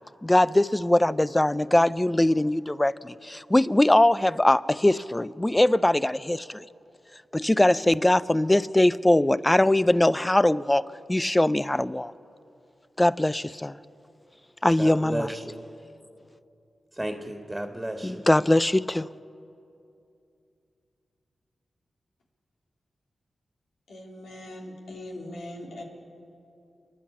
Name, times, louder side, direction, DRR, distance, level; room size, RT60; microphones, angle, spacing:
voice 1, 0.2-6.6 7.3-10.8 11.1-12.1 13.0-13.8 14.6-15.3 18.0-19.1, left 1 dB, 15° left, 17 dB, 0.5 m, -21 dB
voice 2, 14.8-15.6 16.9-18.3, right 1 dB, 15° right, 3 dB, 2.0 m, -33 dB
voice 3, 23.9-25.8, left 1 dB, 90° left, -1 dB, 3.3 m, -40 dB
29.0 x 10.5 x 8.6 m, 2.7 s
cardioid pair, 60°, 0 cm